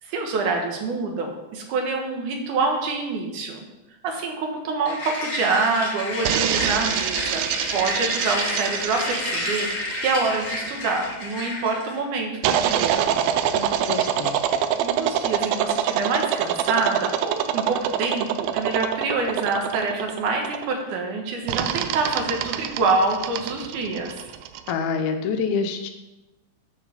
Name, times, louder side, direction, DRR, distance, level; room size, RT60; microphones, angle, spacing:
voice 1, 0.0-3.6 4.0-7.4 7.7-13.1 14.8-24.3, right 3 dB, 65° right, 2 dB, 2.3 m, -26 dB
sound 1, 4.8-12.0, left 2 dB, 45° left, 0.9 m, -30 dB
sound 2, 6.2-11.1 12.4-20.8 21.5-24.7, right 10 dB, 80° right, 2.2 m, -25 dB
voice 2, 13.5-14.4 24.7-25.9, left 5 dB, 75° left, 5 dB, 2.5 m, -27 dB
10.0 x 4.7 x 6.9 m, 1.0 s
omnidirectional pair, 4.7 m